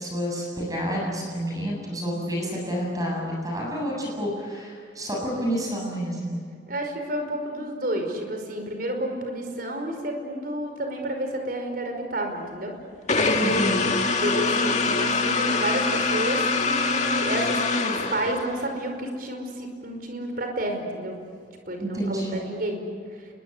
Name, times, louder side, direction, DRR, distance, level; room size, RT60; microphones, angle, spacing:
voice 1, 0.0-6.4 13.4-14.0 21.8-22.3, equal, 20° right, -1 dB, 7.5 m, -29 dB
voice 2, 6.7-12.7 13.2-13.3 14.2-17.6 17.9-21.1 21.7-22.8 23.2-23.3, right 1 dB, 55° right, 4 dB, 5.3 m, -30 dB
sound 1, 13.1-18.7, left 3 dB, 40° left, 2.1 m, -24 dB
30.0 x 22.5 x 8.2 m, 2.1 s
head